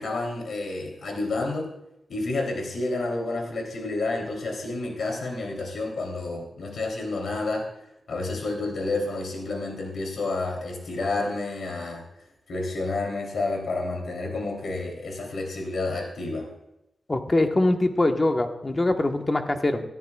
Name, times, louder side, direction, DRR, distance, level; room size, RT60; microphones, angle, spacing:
voice 1, 0.0-1.7 2.1-7.7 8.1-12.0 12.5-16.5, left 2 dB, 80° left, 1 dB, 3.1 m, -30 dB
voice 2, 17.1-19.8, left 2 dB, 30° left, 5 dB, 1.2 m, -23 dB
18.0 x 13.0 x 2.4 m, 0.87 s
wide cardioid pair, 85°, 0 cm